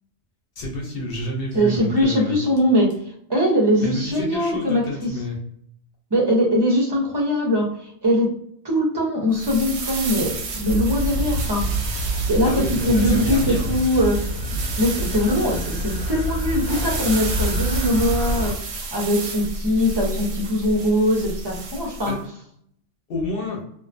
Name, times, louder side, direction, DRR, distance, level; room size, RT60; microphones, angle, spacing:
voice 1, 0.6-2.3 3.8-5.4 12.5-13.8 22.1-22.2 23.1-23.6, left 1 dB, 55° left, 0 dB, 0.7 m, -29 dB
voice 2, 1.5-2.9 3.3-5.1 6.1-7.7 8.0-8.3 8.6-11.7 12.3-14.2 14.8-18.6 18.9-22.2, equal, 30° right, -2 dB, 0.5 m, -21 dB
sound 1, 9.3-22.2, right 3 dB, 65° right, 0.8 m, -32 dB
sound 2, 10.7-18.5, right 1 dB, 85° left, 1.0 m, -26 dB
2.4 x 2.2 x 2.4 m, 0.67 s
omnidirectional pair, 1.3 m